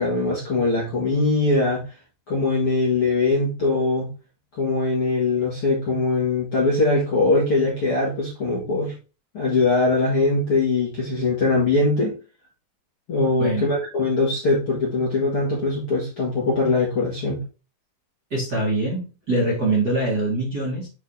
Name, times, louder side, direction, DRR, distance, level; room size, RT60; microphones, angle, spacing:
voice 1, 0.0-1.8 2.3-4.1 4.6-8.9 9.3-12.2 13.1-17.4, left 3 dB, 45° left, 2.0 m, -21 dB
voice 2, 13.2-13.6 18.3-20.9, right 2 dB, 30° right, 2.2 m, -24 dB
8.3 x 4.1 x 2.7 m
omnidirectional pair, 4.4 m